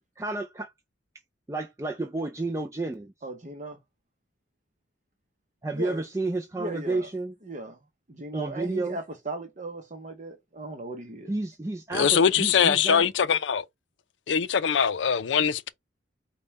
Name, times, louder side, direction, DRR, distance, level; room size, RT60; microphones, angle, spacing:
voice 1, 0.2-0.7 1.5-3.1 5.6-7.3 8.3-9.0 11.3-13.1, right 2 dB, 15° right, 0.4 m, -31 dB
voice 2, 3.2-3.8 5.7-6.0 6.5-7.1 7.4-7.8 8.1-11.3, right 1 dB, 40° right, 0.8 m, -37 dB
voice 3, 11.9-13.6 14.3-15.7, left 7 dB, 75° left, 0.5 m, -22 dB
5.2 x 2.2 x 4.1 m
head